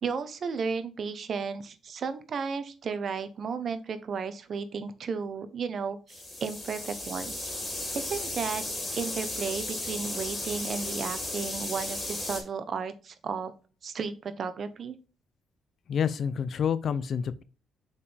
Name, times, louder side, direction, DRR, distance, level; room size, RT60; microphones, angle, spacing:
voice 1, 0.0-7.6 7.9-8.6 8.9-13.5 13.8-15.0, right 5 dB, 55° right, 0.9 m, -34 dB
sound 1, 6.1-12.4, left 1 dB, 20° left, 3.6 m, -35 dB
voice 2, 15.9-17.4, left 7 dB, 60° left, 0.6 m, -28 dB
6.6 x 5.3 x 3.4 m
cardioid pair, 90°, 0 cm